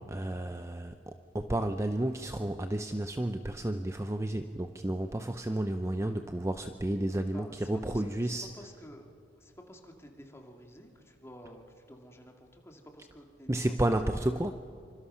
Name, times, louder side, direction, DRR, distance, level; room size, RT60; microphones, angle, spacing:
voice 1, 0.0-8.5 13.5-14.5, right 1 dB, 15° right, 8 dB, 0.6 m, -32 dB
voice 2, 7.3-9.1 9.4-14.1, equal, 15° left, 2 dB, 2.3 m, -51 dB
26.0 x 25.0 x 5.7 m, 2.7 s
head